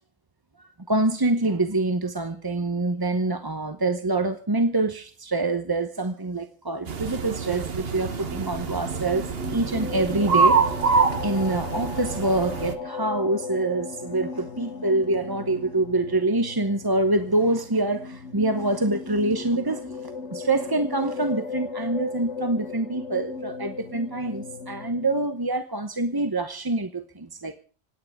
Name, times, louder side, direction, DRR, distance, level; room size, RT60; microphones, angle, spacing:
voice 1, 0.9-27.6, right 2 dB, 20° right, 0.8 m, -26 dB
sound 1, 6.9-12.7, right 5 dB, 50° right, 1.4 m, -25 dB
sound 2, 8.0-25.3, left 4 dB, 65° left, 1.3 m, -37 dB
26.0 x 9.6 x 4.8 m
omnidirectional pair, 1.3 m